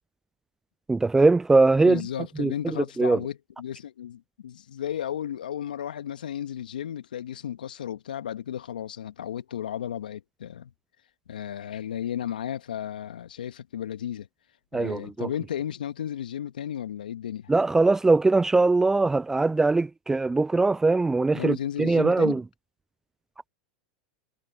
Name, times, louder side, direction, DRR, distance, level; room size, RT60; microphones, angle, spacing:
voice 1, 0.9-2.0 2.4-2.5 3.0-3.2 14.7-15.3 17.5-22.4, right 3 dB, 10° right, 0.4 m, -21 dB
voice 2, 1.8-10.7 11.3-14.3 14.7-17.5 21.3-22.4, left 10 dB, 80° left, 1.9 m, -34 dB
hypercardioid pair, 95°, 5 cm